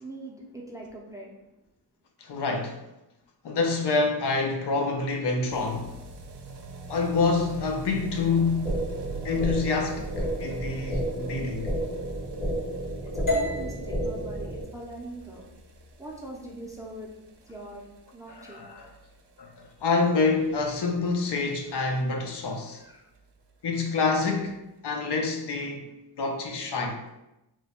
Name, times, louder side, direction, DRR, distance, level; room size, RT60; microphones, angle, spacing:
voice 1, 0.0-1.3 13.0-15.4 16.0-17.1 17.4-17.9 18.1-18.6 22.7-23.1, right 2 dB, 10° right, 0.4 m, -41 dB
voice 2, 2.2-2.8 3.4-5.9 6.9-8.8 9.2-11.7 18.3-18.9 19.4-22.8 23.6-24.5 24.8-25.8 26.2-27.0, left 4 dB, 70° left, 0.6 m, -27 dB
sound 1, 5.5-22.3 22.5-22.6 22.8-22.9 23.1-23.2 23.5-23.6 24.3-24.4, right 2 dB, 70° right, 0.5 m, -44 dB
sound 2, 8.6-14.6, right 1 dB, 85° left, 1.3 m, -31 dB
sound 3, 13.3-17.4, left 1 dB, 50° left, 0.9 m, -35 dB
3.0 x 2.1 x 4.2 m
wide cardioid pair, 160°, 42 cm